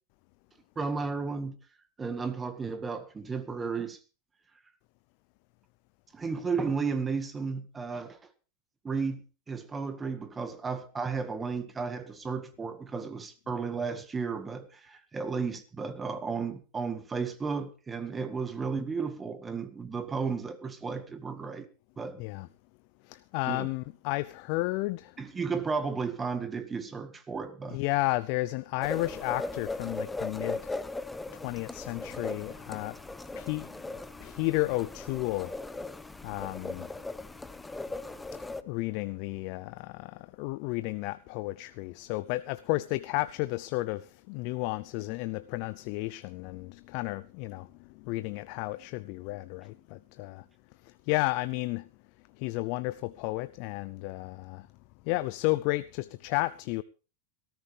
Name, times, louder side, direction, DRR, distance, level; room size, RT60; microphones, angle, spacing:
voice 1, 0.8-1.6 2.0-4.0 6.1-8.2 8.8-21.7 22.0-22.2 23.5-23.7 25.2-27.8, right 5 dB, 20° right, 1.8 m, -33 dB
voice 2, 22.2-22.5 23.0-25.2 27.7-30.8 31.3-33.0 33.3-33.9 34.2-35.5 36.2-36.9 38.3-50.5 50.8-51.9 52.3-54.7 55.0-56.8, left 20 dB, 55° left, 0.6 m, -32 dB
sound 1, 28.8-38.6, left 2 dB, 10° left, 0.9 m, -38 dB
18.5 x 14.0 x 3.5 m
hypercardioid pair, 95°, 0 cm